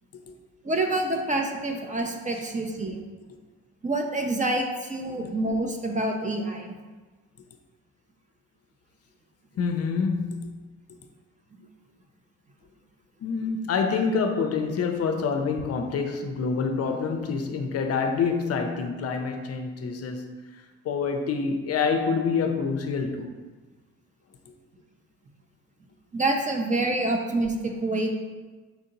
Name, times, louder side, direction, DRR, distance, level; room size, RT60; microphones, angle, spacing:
voice 1, 0.6-3.0 3.8-6.8 11.5-11.6 26.1-28.1, right 2 dB, 25° right, 2 dB, 0.5 m, -27 dB
voice 2, 9.6-10.5 13.2-20.4 20.8-23.3, left 5 dB, 55° left, 5 dB, 0.5 m, -27 dB
4.5 x 2.7 x 3.9 m, 1.3 s
cardioid pair, 90°, 30 cm